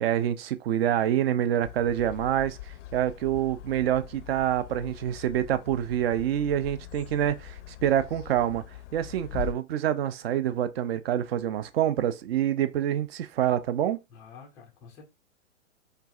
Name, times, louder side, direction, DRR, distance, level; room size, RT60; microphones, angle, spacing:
voice 1, 0.0-2.6 2.9-8.6 8.9-14.0, right 11 dB, 50° right, 0.5 m, -26 dB
sound 1, 1.6-9.5, left 10 dB, 65° left, 0.5 m, -42 dB
voice 2, 14.1-15.0, left 6 dB, 10° left, 0.3 m, -49 dB
4.5 x 2.4 x 2.4 m
hypercardioid pair, 125°, 39 cm